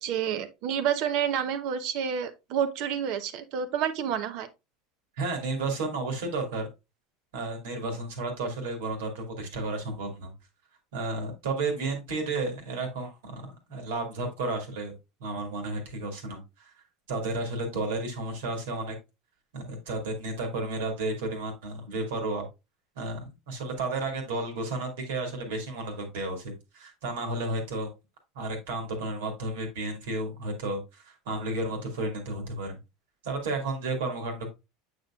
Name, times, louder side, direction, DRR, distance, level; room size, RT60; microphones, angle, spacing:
voice 1, 0.0-4.5, right 8 dB, 65° right, 0.9 m, -29 dB
voice 2, 5.2-6.7 7.3-10.3 10.9-15.0 15.2-16.7 17.1-19.0 19.5-22.5 23.0-27.9 28.3-32.8 33.2-34.5, right 2 dB, 80° right, 2.1 m, -32 dB
7.8 x 5.3 x 2.4 m
hypercardioid pair, 90°, 0 cm